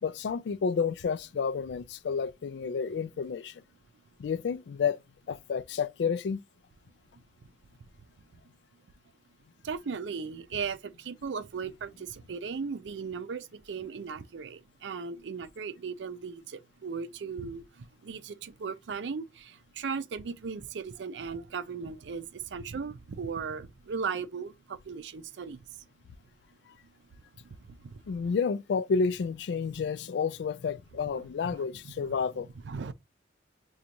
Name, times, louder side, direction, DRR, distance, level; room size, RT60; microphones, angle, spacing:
voice 1, 0.0-3.6 4.2-5.0 5.3-6.4 28.1-32.5, left 5 dB, 70° left, 0.3 m, -30 dB
voice 2, 9.6-17.6 18.0-22.2 22.5-25.6 27.8-27.9 28.3-28.4 31.1-31.3 31.5-32.2 32.6-32.9, right 5 dB, 85° right, 0.4 m, -37 dB
5.1 x 2.3 x 2.8 m
head